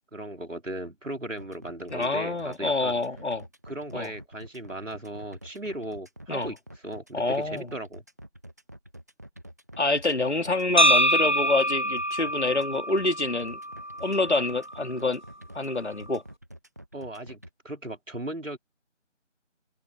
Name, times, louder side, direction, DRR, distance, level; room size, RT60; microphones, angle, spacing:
voice 1, 0.1-3.0 3.6-8.0 16.9-18.6, right 1 dB, 85° right, 3.8 m, -37 dB
sound 1, 1.4-17.5, equal, 15° right, 1.6 m, -47 dB
voice 2, 1.9-3.5 3.9-4.1 6.3-6.5 7.1-7.7 9.8-13.6 14.0-15.2 15.5-16.2, left 2 dB, 65° left, 2.9 m, -27 dB
sound 2, 10.8-14.8, equal, 40° right, 0.6 m, -25 dB
open air
figure-of-eight pair, 170°, 37 cm